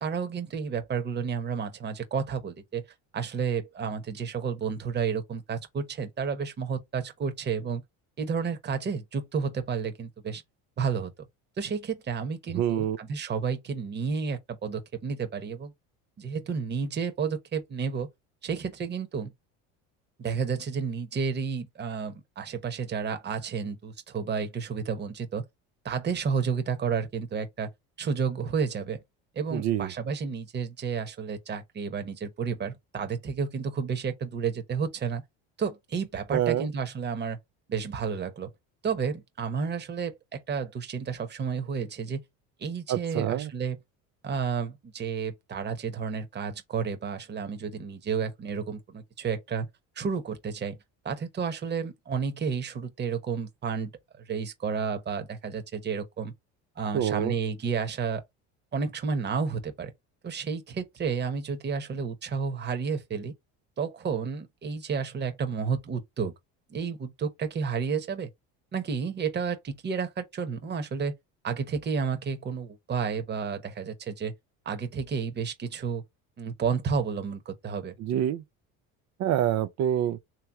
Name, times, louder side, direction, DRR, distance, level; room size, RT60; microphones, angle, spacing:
voice 1, 0.0-2.8 3.1-7.8 8.2-10.4 10.8-11.3 11.6-15.7 16.2-18.1 18.4-19.3 20.2-25.4 25.8-27.7 28.0-29.0 29.3-35.2 35.6-37.4 37.7-38.5 38.8-42.2 42.6-43.8 44.2-49.7 50.0-50.8 51.0-53.9 54.3-56.3 56.8-58.2 58.7-59.9 60.2-63.3 63.8-66.3 66.7-68.3 68.7-71.1 71.4-74.3 74.6-76.0 76.4-77.9, right 6 dB, 30° right, 1.1 m, -31 dB
voice 2, 12.5-13.0 29.5-29.9 36.3-36.7 42.9-43.5 56.9-57.3 78.0-78.4 79.2-80.2, right 11 dB, 55° right, 0.5 m, -26 dB
3.3 x 2.9 x 4.7 m
cardioid pair, 105°, 33 cm